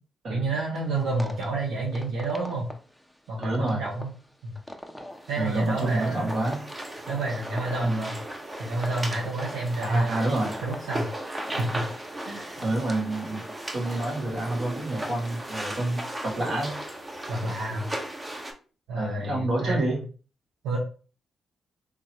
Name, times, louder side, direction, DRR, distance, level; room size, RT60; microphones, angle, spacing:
voice 1, 0.3-2.7 3.3-4.1 4.4-4.5 5.3-6.4 7.1-8.1 8.6-10.2 10.6-11.0 11.6-11.8 12.2-12.6 17.3-17.9 18.9-20.0 20.6-20.8, right 2 dB, 90° right, -5 dB, 0.9 m, -29 dB
sound 1, 0.7-14.6, equal, ahead, 0.7 m, -43 dB
voice 2, 3.4-3.8 5.4-6.6 7.8-8.0 9.8-10.6 12.6-13.4 13.7-16.7 18.9-20.0, right 2 dB, 65° right, -1 dB, 1.6 m, -28 dB
sound 2, 5.1-18.5, right 1 dB, 25° right, 1.0 m, -37 dB
3.5 x 3.2 x 2.9 m, 0.37 s
supercardioid pair, 50°, 0 cm